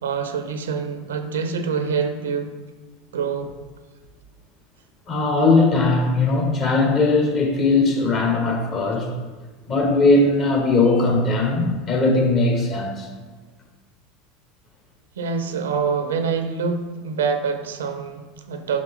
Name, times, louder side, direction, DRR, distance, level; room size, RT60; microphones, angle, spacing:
voice 1, 0.0-2.5 3.1-3.5 15.2-18.8, right 5 dB, 80° right, 8 dB, 0.5 m, -25 dB
voice 2, 5.1-9.1 9.7-13.1, left 3 dB, 45° left, 1 dB, 1.6 m, -19 dB
5.7 x 4.9 x 3.8 m, 1.3 s
hypercardioid pair, 80°, 0 cm